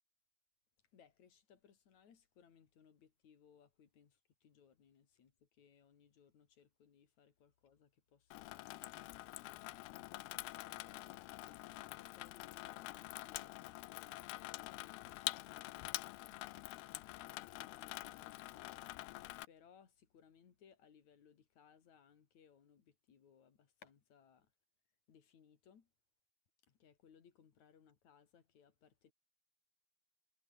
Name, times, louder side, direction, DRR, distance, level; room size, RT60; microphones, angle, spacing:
voice 1, 0.9-8.8 9.7-16.4 17.2-19.0 19.5-24.5 25.1-25.9 26.6-29.1, left 7 dB, 45° left, 3.5 m, -66 dB
Water tap faucet / Sink (filling or washing), 8.3-19.5, left 19 dB, 80° left, 2.5 m, -47 dB
omnidirectional pair, 5.1 m